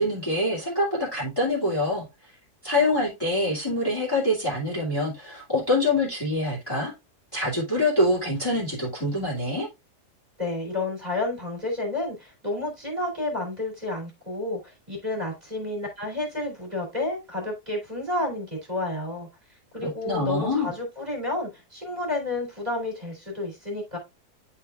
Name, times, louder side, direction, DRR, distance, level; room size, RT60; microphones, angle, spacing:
voice 1, 0.0-2.0 2.6-6.9 7.3-9.7 19.8-20.7, left 1 dB, 15° left, 2.6 m, -25 dB
voice 2, 10.4-19.3 19.7-24.0, left 2 dB, 25° right, 3.3 m, -30 dB
11.0 x 4.4 x 2.4 m
omnidirectional pair, 1.7 m